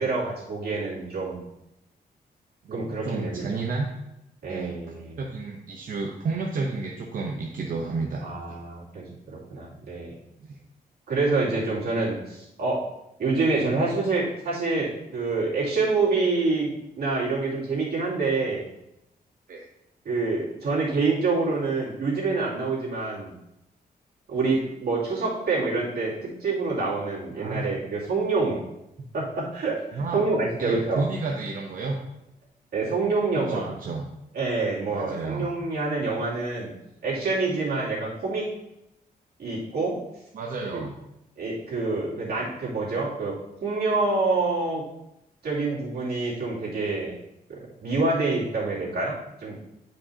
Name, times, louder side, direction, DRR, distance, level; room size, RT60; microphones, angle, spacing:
voice 1, 0.0-1.4 2.7-3.6 4.4-5.2 8.2-10.1 11.1-12.9 13.2-18.6 20.0-23.3 24.3-28.6 29.1-31.0 32.7-33.7 34.3-36.7 37.0-38.5 39.4-40.0 40.7-40.8 41.4-44.8 45.4-47.1 47.5-49.8, right 3 dB, 90° right, -7 dB, 2.7 m, -27 dB
voice 2, 2.6-3.9 4.5-4.8 5.2-8.6 10.5-10.6 19.5-19.6 27.3-27.7 29.9-30.3 30.6-32.0 33.4-34.1 34.9-35.5 40.3-40.9, right 3 dB, 60° right, -1 dB, 0.8 m, -31 dB
11.0 x 5.2 x 2.8 m, 0.86 s
wide cardioid pair, 160°, 16 cm